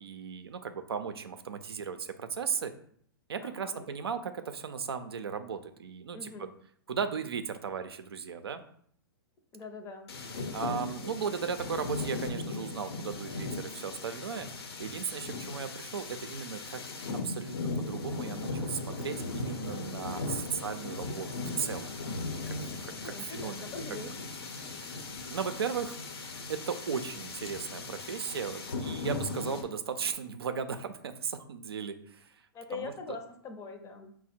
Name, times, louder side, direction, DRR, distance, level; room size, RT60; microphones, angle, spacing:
voice 1, 0.0-2.7 3.3-6.3 6.9-8.6 10.5-14.5 14.8-16.8 17.2-21.3 21.6-21.9 22.5-23.8 24.7-24.9 25.3-26.0 26.5-32.3 32.7-32.9, right 6 dB, 85° right, 8 dB, 0.5 m, -36 dB
voice 2, 3.4-3.9 6.1-6.5 9.5-10.1 22.9-24.1 32.5-34.1, left 4 dB, 20° left, 5 dB, 0.6 m, -43 dB
sound 1, 10.1-29.6, left 3 dB, 80° left, 0.9 m, -38 dB
4.9 x 2.1 x 4.2 m, 0.62 s
hypercardioid pair, 125°, 13 cm